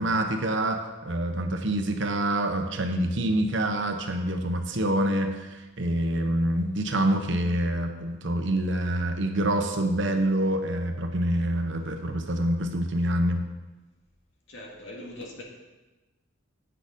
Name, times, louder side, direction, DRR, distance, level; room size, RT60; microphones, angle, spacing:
voice 1, 0.0-13.4, right 1 dB, 60° right, 5 dB, 0.9 m, -26 dB
voice 2, 14.5-15.4, left 1 dB, 70° left, -1 dB, 1.9 m, -41 dB
8.8 x 6.5 x 5.2 m, 1.1 s
head